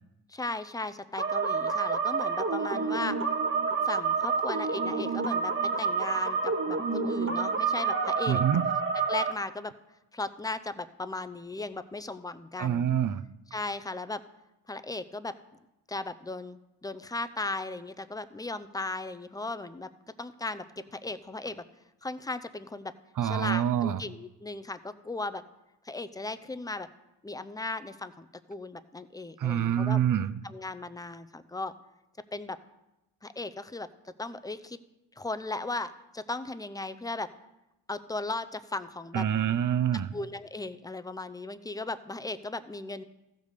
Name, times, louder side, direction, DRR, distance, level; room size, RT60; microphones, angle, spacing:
voice 1, 0.3-3.3 3.8-5.5 5.8-8.4 9.1-9.7 10.1-12.9 13.5-14.2 14.7-15.3 15.9-19.9 20.2-21.6 22.0-22.9 23.2-25.4 25.8-26.9 27.2-30.0 30.4-31.7 32.3-32.6 33.2-34.8 35.2-37.3 37.9-39.3 40.1-43.0, left 2 dB, 10° left, 12 dB, 0.5 m, -37 dB
sound 1, 1.2-9.3, right 5 dB, 25° right, 1.1 m, -28 dB
voice 2, 8.3-8.6 12.6-13.2 23.2-24.0 29.4-30.4 39.1-40.1, right 9 dB, 45° right, 12 dB, 0.6 m, -26 dB
14.5 x 5.3 x 6.6 m, 0.95 s
cardioid pair, 65°, 44 cm